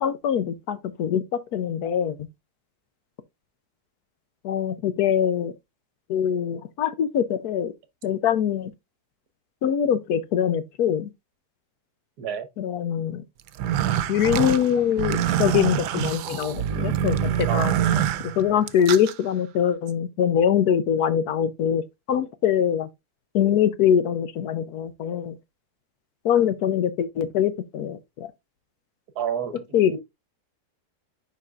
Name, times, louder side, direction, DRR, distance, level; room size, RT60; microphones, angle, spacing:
voice 1, 0.0-1.2 1.5-2.2 4.4-5.5 6.1-7.7 8.0-8.7 9.6-11.1 12.6-13.2 14.1-17.7 18.2-21.8 22.1-22.9 23.3-25.4 26.2-28.3 29.7-30.0, left 9 dB, 70° left, 1.1 m, -23 dB
sound 1, 13.5-19.1, right 10 dB, 85° right, 1.2 m, -25 dB
voice 2, 17.5-18.1 29.1-30.0, right 8 dB, 70° right, 1.5 m, -31 dB
10.5 x 4.1 x 2.4 m
omnidirectional pair, 1.8 m